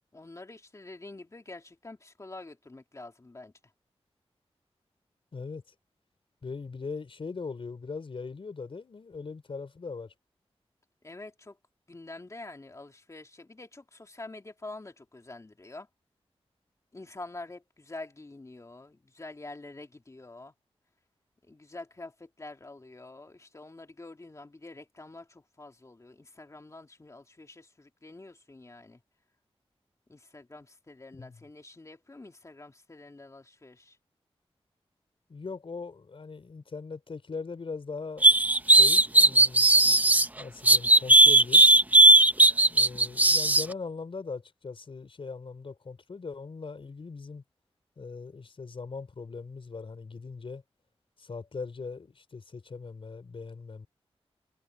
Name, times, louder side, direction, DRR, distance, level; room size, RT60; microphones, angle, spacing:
voice 1, 0.1-3.5 11.0-11.6 11.9-15.9 16.9-20.5 21.5-29.0 30.1-34.0, left 2 dB, 30° left, 2.7 m, -46 dB
voice 2, 5.3-5.6 6.4-10.1 31.1-31.4 35.3-38.3 38.6-39.7 40.4-41.7 42.7-47.4 48.0-50.6 51.2-53.9, left 4 dB, 60° left, 4.5 m, -40 dB
sound 1, 38.2-40.3 40.7-43.6, right 2 dB, 15° right, 0.6 m, -17 dB
wide cardioid pair, 90°, 10 cm